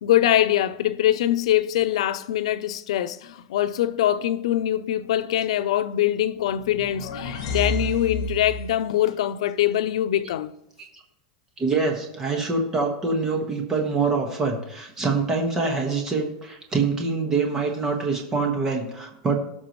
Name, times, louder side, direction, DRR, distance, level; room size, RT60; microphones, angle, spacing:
voice 1, 0.0-10.5, left 12 dB, 90° left, 0.6 m, -23 dB
sound 1, 6.5-8.8, left 1 dB, 60° left, 2.1 m, -31 dB
voice 2, 11.6-19.4, right 4 dB, 15° right, 1.5 m, -25 dB
17.0 x 6.0 x 3.2 m
supercardioid pair, 170°, 3 cm